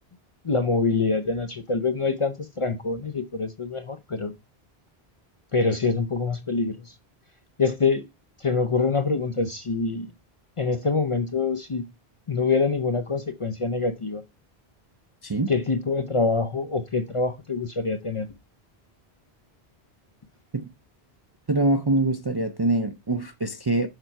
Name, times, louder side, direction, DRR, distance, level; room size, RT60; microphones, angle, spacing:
voice 1, 0.4-4.3 5.5-6.9 7.6-8.1 8.4-10.1 10.6-11.9 12.3-14.2 15.5-18.3, left 4 dB, 40° left, 0.5 m, -25 dB
voice 2, 21.5-23.9, right 2 dB, 35° right, 0.4 m, -24 dB
6.7 x 4.5 x 5.6 m
omnidirectional pair, 1.1 m